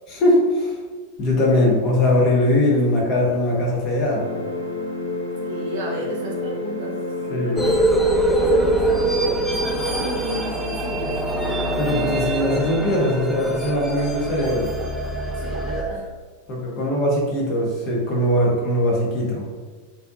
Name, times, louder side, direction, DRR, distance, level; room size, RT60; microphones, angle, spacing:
voice 1, 0.1-0.8 1.2-4.2 7.3-7.6 11.8-14.7 16.5-19.5, left 1 dB, 40° left, -3 dB, 0.7 m, -20 dB
sound 1, 4.1-11.1, left 2 dB, 85° left, 0.4 m, -31 dB
voice 2, 5.4-7.0 7.4-7.8 8.4-11.1 15.4-16.1, right 1 dB, 50° right, -2 dB, 0.6 m, -33 dB
sound 2, 7.6-15.8, right 1 dB, 5° right, 0.3 m, -23 dB
2.6 x 2.2 x 2.5 m, 1.4 s
figure-of-eight pair, 90°, 0 cm